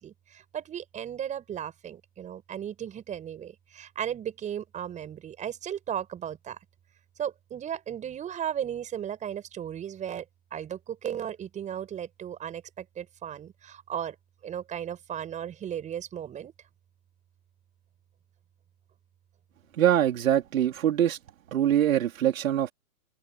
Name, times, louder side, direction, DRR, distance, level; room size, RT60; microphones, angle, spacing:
voice 1, 0.0-6.6 7.2-10.2 10.5-14.1 14.4-16.5, right 9 dB, 15° right, 6.4 m, -35 dB
voice 2, 19.8-21.2 21.5-22.7, right 11 dB, 65° right, 3.4 m, -23 dB
open air
hypercardioid pair, 145°, 44 cm